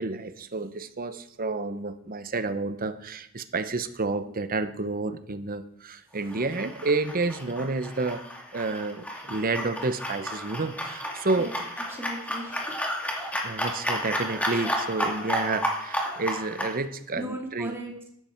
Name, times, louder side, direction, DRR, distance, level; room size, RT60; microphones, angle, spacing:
voice 1, 0.0-8.2 8.5-11.5 13.4-17.8, right 3 dB, 40° right, 11 dB, 0.9 m, -30 dB
sound 1, 6.3-16.8, equal, 5° left, 2.5 m, -32 dB
voice 2, 11.9-12.7 13.0-13.5 17.2-18.1, right 1 dB, 10° right, 1 dB, 2.7 m, -38 dB
15.0 x 12.0 x 4.5 m, 0.71 s
head